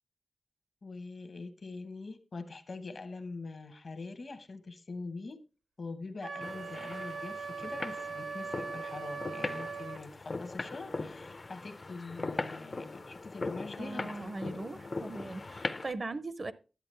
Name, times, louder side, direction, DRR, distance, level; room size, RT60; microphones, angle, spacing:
voice 1, 0.8-5.4 5.8-15.2, left 3 dB, 55° left, 1.0 m, -44 dB
Wind instrument woodwind instrument, 6.2-10.0, right 4 dB, 85° right, 0.8 m, -40 dB
sound 1, 6.4-15.9, left 3 dB, 40° left, 0.5 m, -40 dB
voice 2, 13.8-16.5, right 2 dB, 40° right, 0.5 m, -39 dB
10.5 x 8.1 x 3.2 m
wide cardioid pair, 125°, 0 cm